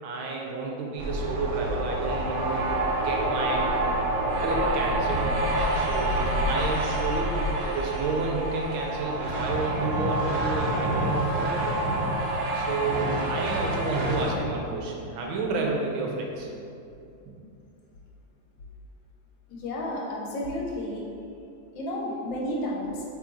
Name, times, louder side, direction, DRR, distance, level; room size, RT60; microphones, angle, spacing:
voice 1, 0.0-2.7 3.0-3.7 4.4-5.3 5.7-12.0 12.5-16.5 17.3-17.4, right 3 dB, 75° right, 0 dB, 1.5 m, -31 dB
sound 1, 1.0-14.4, right 1 dB, 60° right, 1.1 m, -27 dB
voice 2, 19.5-21.0 21.7-23.0, left 1 dB, 70° left, -2 dB, 1.5 m, -31 dB
7.8 x 3.4 x 3.8 m, 2.6 s
omnidirectional pair, 2.3 m